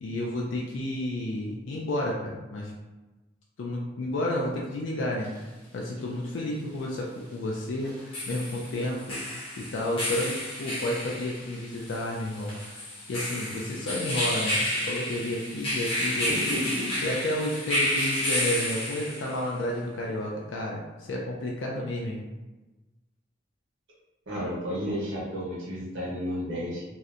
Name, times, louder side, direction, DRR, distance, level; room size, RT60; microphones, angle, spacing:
voice 1, 0.0-2.7 3.6-5.3 5.7-9.2 9.6-16.6 17.0-22.2, left 1 dB, 75° left, -3 dB, 0.4 m, -31 dB
sound 1, 5.2-5.3 7.9-19.5, left 1 dB, 30° left, 0.6 m, -31 dB
voice 2, 16.3-16.9 24.3-26.8, equal, 85° right, -7 dB, 1.0 m, -32 dB
2.7 x 2.1 x 2.4 m, 1.1 s
head